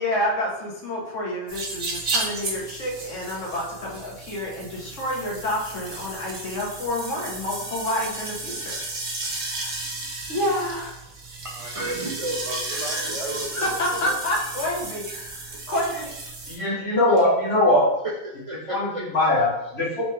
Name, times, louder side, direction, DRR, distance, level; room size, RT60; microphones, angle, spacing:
voice 1, 0.0-8.8 9.2-9.8 10.3-11.0 12.7-13.1 13.5-16.1, left 1 dB, 90° left, -3 dB, 1.4 m, -29 dB
sound 1, 1.5-16.6, right 2 dB, 85° right, 1.2 m, -34 dB
voice 2, 11.4-14.1 15.7-15.8 17.1-17.2 18.2-18.8, right 1 dB, 60° right, -1 dB, 0.3 m, -33 dB
voice 3, 16.5-17.9 18.7-20.0, left 1 dB, 60° left, -9 dB, 2.1 m, -21 dB
4.0 x 3.3 x 3.2 m, 0.84 s
omnidirectional pair, 1.2 m